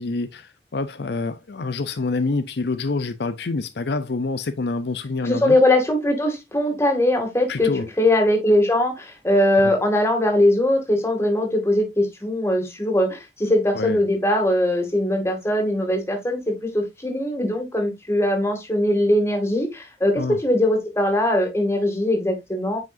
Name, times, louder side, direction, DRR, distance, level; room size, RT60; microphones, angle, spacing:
voice 1, 0.0-5.6 7.5-7.8 13.7-14.0 20.2-20.4, left 3 dB, 70° left, 0.6 m, -26 dB
voice 2, 5.2-22.8, left 1 dB, 15° left, 2.2 m, -21 dB
9.4 x 5.1 x 2.6 m
head